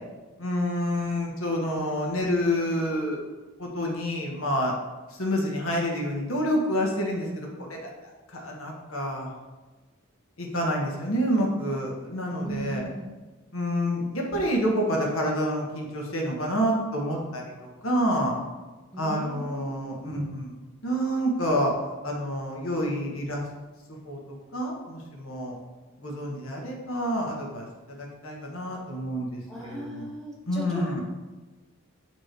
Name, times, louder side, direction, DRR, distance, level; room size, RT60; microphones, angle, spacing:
voice 1, 0.4-3.2 3.6-4.8 5.1-9.3 10.4-12.8 13.5-18.4 19.0-20.5 20.8-21.7 22.0-23.4 23.9-24.2 24.5-25.6 26.0-30.1 30.5-31.0, equal, 75° left, -1 dB, 1.3 m, -28 dB
voice 2, 12.4-13.1 18.9-20.3 29.5-31.0, right 1 dB, 5° left, -5 dB, 1.0 m, -37 dB
7.5 x 3.1 x 4.6 m, 1.2 s
head